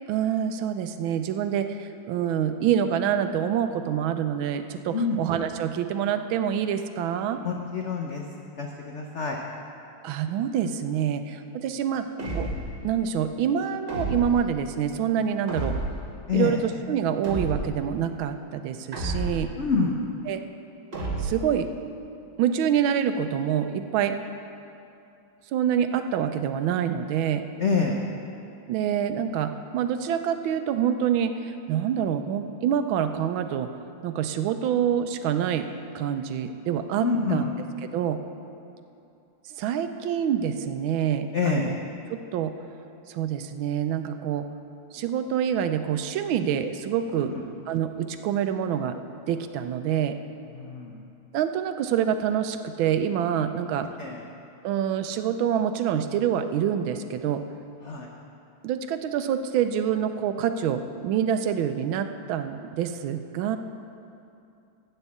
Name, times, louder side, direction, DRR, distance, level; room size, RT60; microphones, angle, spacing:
voice 1, 0.1-7.4 10.0-12.1 12.3-12.5 12.8-15.8 16.3-19.5 20.3-20.4 21.2-21.7 22.4-24.2 25.5-27.4 28.7-33.7 34.0-35.7 35.9-37.4 37.9-38.2 39.5-41.8 42.1-42.5 43.1-44.5 44.9-47.3 47.7-49.0 49.3-50.2 51.3-53.9 54.6-57.4 58.6-63.6, right 9 dB, 80° right, 9 dB, 1.3 m, -26 dB
voice 2, 7.4-8.2 8.6-9.4 16.3-16.6 19.6-20.0 27.6-28.0 37.0-37.5 41.3-41.7 47.2-47.3 50.6-51.0 54.0-54.2 57.8-58.1, left 5 dB, 75° left, 0 dB, 0.6 m, -26 dB
sound 1, 12.2-12.9 13.9-14.5 15.5-16.1 17.2-17.9 18.9-19.6 20.9-21.6, right 2 dB, 35° right, 1.4 m, -31 dB
13.5 x 4.5 x 8.3 m, 2.7 s
omnidirectional pair, 2.2 m